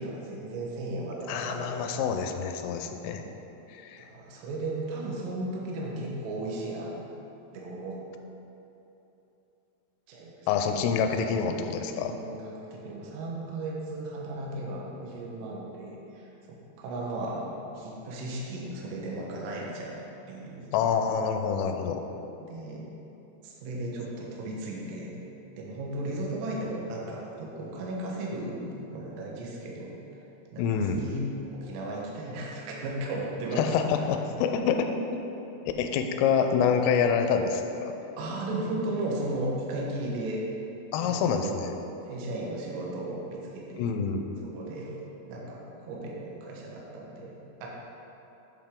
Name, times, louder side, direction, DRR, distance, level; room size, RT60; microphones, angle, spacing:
voice 1, 0.0-1.9 4.0-7.0 7.4-8.0 10.1-10.9 12.0-17.5 17.8-20.0 20.3-20.7 22.4-22.8 23.4-25.1 25.6-28.6 28.9-30.3 30.5-31.2 31.5-33.6 38.2-40.4 41.0-41.6 42.1-43.9 44.4-44.9 45.3-47.7, right 2 dB, 70° right, -3 dB, 2.9 m, -35 dB
voice 2, 1.3-3.2 3.7-4.1 10.5-12.1 20.7-22.0 30.6-31.0 33.6-35.2 35.8-37.9 40.9-41.7 43.8-44.3, left 6 dB, 85° left, 5 dB, 3.1 m, -27 dB
8.5 x 7.9 x 3.7 m, 3.0 s
omnidirectional pair, 5.9 m